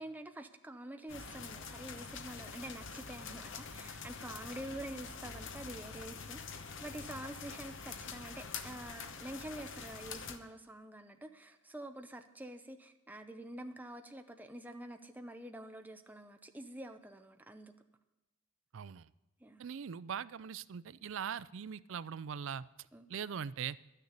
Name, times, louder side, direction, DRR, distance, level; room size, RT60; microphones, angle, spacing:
voice 1, 0.0-17.7 19.4-19.7 22.9-23.1, right 1 dB, 10° right, 6 dB, 0.7 m, -47 dB
sound 1, 1.1-10.4, left 5 dB, 60° left, 1.0 m, -46 dB
voice 2, 18.7-19.1 19.6-22.6 23.1-23.8, right 7 dB, 60° right, 18 dB, 0.4 m, -41 dB
12.0 x 6.7 x 9.6 m, 1.0 s
head